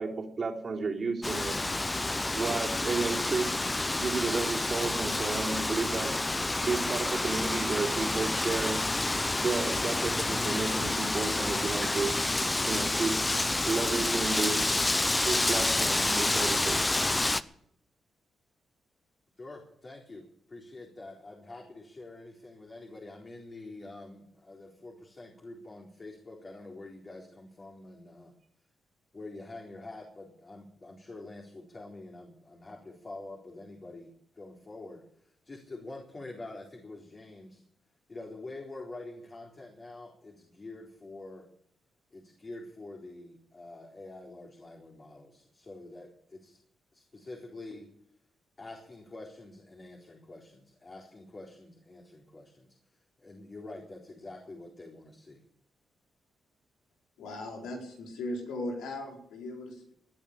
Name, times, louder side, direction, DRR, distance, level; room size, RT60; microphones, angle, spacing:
voice 1, 0.0-1.7 2.3-6.2 6.6-8.9 9.4-12.2 12.7-14.9 15.3-16.8, right 4 dB, 50° right, -1 dB, 3.7 m, -32 dB
Wind, 1.2-17.4, left 2 dB, 20° left, 0.9 m, -29 dB
voice 2, 19.4-28.3 29.1-37.6 38.1-41.5 42.1-46.6 46.9-47.9 48.6-55.4, left 2 dB, 40° left, -1 dB, 4.2 m, -46 dB
voice 3, 57.2-59.9, left 1 dB, 85° left, 0 dB, 4.6 m, -38 dB
19.5 x 10.5 x 6.9 m, 0.68 s
supercardioid pair, 55°, 0 cm